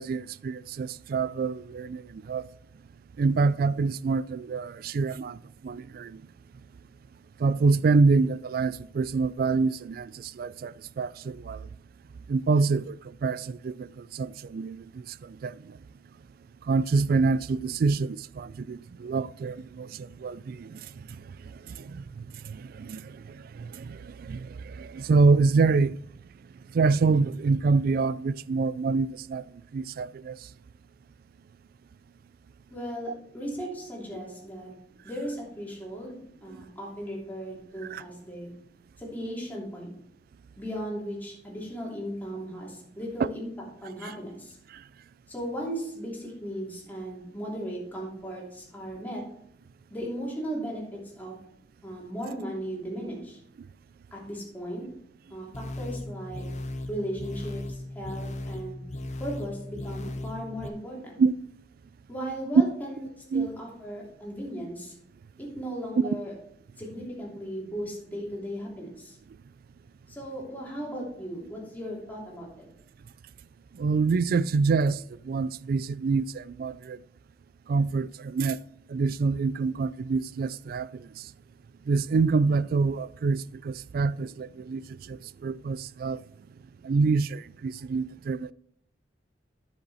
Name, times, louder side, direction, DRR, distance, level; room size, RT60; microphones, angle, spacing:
voice 1, 0.0-2.5 3.2-6.2 7.4-11.7 12.3-15.7 16.7-20.9 21.6-26.0 26.7-29.5 29.7-30.4 37.9-38.0 44.0-44.1 61.2-61.3 63.3-63.5 73.7-77.0 77.7-78.6 78.9-81.3 81.9-86.2 86.8-88.5, right 4 dB, 55° right, 0.3 m, -26 dB
voice 2, 32.7-34.7 35.0-38.5 39.0-39.9 40.6-44.6 45.3-49.2 49.9-51.3 51.8-53.4 54.1-54.8 55.3-56.4 56.9-58.8 59.2-61.0 62.1-63.0 63.3-64.9 65.4-66.3 66.8-69.2 70.1-72.6, equal, 10° left, 3.0 m, -36 dB
sound 1, 55.5-60.7, left 1 dB, 40° left, 0.8 m, -37 dB
10.0 x 6.9 x 4.2 m
head